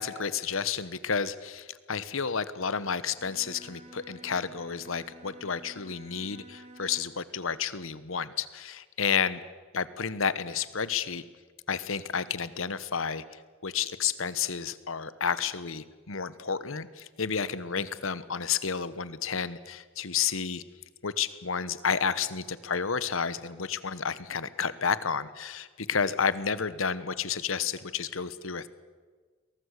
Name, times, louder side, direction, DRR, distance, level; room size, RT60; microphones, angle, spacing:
voice 1, 0.0-9.4 9.7-11.2 11.7-13.2 13.6-20.6 21.0-28.7, left 6 dB, 70° left, 15 dB, 1.1 m, -31 dB
Bowed string instrument, 3.0-7.2, right 1 dB, 30° right, 2.2 m, -51 dB
22.5 x 18.0 x 8.3 m, 1.5 s
head